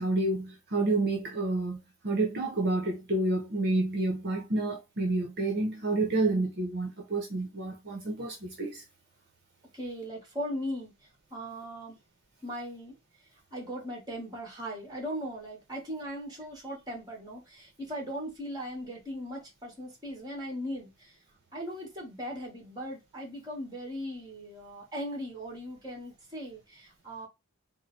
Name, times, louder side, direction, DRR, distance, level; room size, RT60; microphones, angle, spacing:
voice 1, 0.0-8.8, right 2 dB, 50° right, 0.9 m, -29 dB
voice 2, 9.7-10.9 11.3-12.0 12.4-13.0 13.5-21.2 21.5-27.3, equal, 20° right, 1.7 m, -38 dB
3.8 x 2.2 x 4.2 m
head